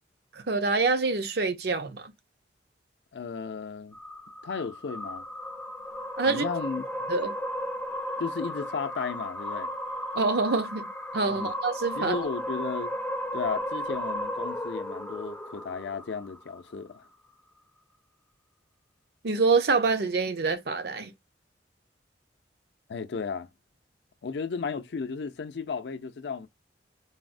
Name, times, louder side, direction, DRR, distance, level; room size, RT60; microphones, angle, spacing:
voice 1, 0.3-2.1 6.2-6.4 7.1-7.3 10.1-10.9 11.1-12.3 19.2-21.1, right 4 dB, 60° right, 0.6 m, -26 dB
voice 2, 3.1-4.0 4.4-5.3 6.3-7.0 8.2-9.7 11.3-11.5 11.9-12.9 13.3-17.0 22.9-23.5 24.2-26.5, left 5 dB, 70° left, 0.4 m, -34 dB
sound 1, 3.9-16.4, equal, 10° left, 0.4 m, -35 dB
4.0 x 2.0 x 2.5 m
head